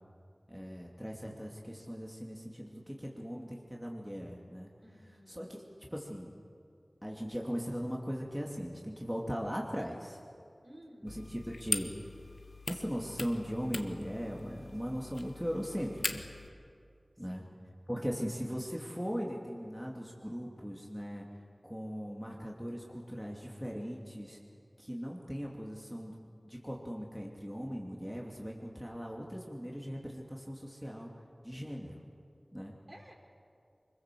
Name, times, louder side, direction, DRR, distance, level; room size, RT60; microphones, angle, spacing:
voice 1, 0.5-4.7 5.3-5.6 5.9-6.3 7.0-10.2 11.0-11.9 12.7-16.2 17.2-17.4 17.9-21.3 21.7-24.4 24.8-26.2 26.4-31.1 31.4-32.0 32.5-32.7, equal, 5° right, -2 dB, 2.7 m, -39 dB
voice 2, 4.8-5.5 10.6-11.1 17.2-17.6 32.9-33.1, equal, 40° right, 0 dB, 4.6 m, -55 dB
sound 1, 11.1-16.5, left 3 dB, 85° left, 1.3 m, -41 dB
24.5 x 22.5 x 7.7 m, 2.4 s
wide cardioid pair, 50°, 0 cm